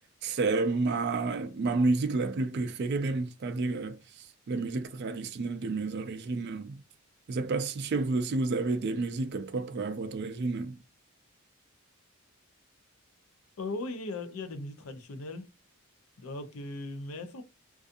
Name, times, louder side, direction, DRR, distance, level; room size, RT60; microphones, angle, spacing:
voice 1, 0.2-4.0 4.5-6.8 7.3-10.8, right 3 dB, 50° right, 0.3 m, -30 dB
voice 2, 13.6-15.5 16.2-17.4, left 2 dB, 70° left, 0.5 m, -38 dB
2.6 x 2.3 x 2.5 m
head